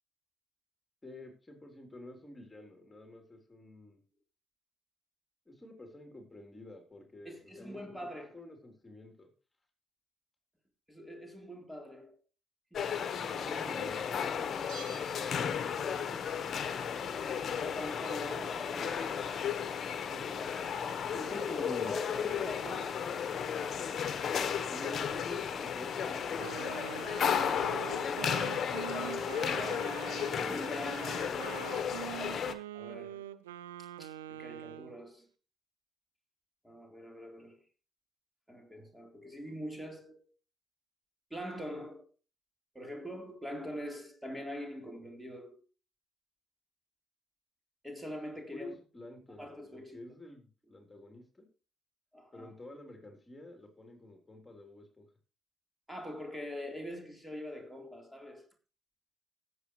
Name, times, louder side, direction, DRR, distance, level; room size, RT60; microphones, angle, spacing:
voice 1, 1.0-4.0 5.5-7.8 8.2-9.3 13.7-14.5 15.2-16.1 20.1-20.3 21.1-21.9 24.7-26.7 48.5-51.5 52.3-55.1, left 1 dB, 20° left, 3.6 m, -49 dB
voice 2, 7.2-8.3 10.9-12.2 12.7-13.1 13.3-13.9 17.6-19.2 21.1-23.1 28.0-31.4 32.7-33.3 33.8-35.3 36.6-37.6 38.5-40.3 41.3-42.1 42.7-45.6 47.8-48.7 49.4-50.2 52.1-52.5 55.9-58.5, left 1 dB, 10° right, 3.7 m, -44 dB
sound 1, 12.7-32.5, left 7 dB, 55° left, 1.2 m, -34 dB
Bell, 14.7-16.1 16.4-16.5, right 4 dB, 70° right, 6.8 m, -51 dB
Wind instrument woodwind instrument, 26.4-35.0, right 12 dB, 90° right, 0.6 m, -44 dB
19.0 x 8.2 x 3.2 m
hypercardioid pair, 45°, 0 cm